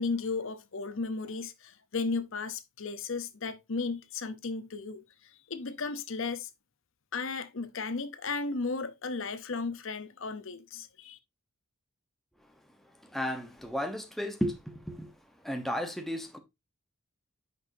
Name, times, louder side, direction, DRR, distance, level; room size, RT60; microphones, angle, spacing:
voice 1, 0.0-6.5 7.1-11.2, left 4 dB, 60° left, 0.8 m, -35 dB
voice 2, 13.1-15.1 15.4-16.4, equal, ahead, 1.0 m, -33 dB
10.0 x 5.3 x 2.7 m
head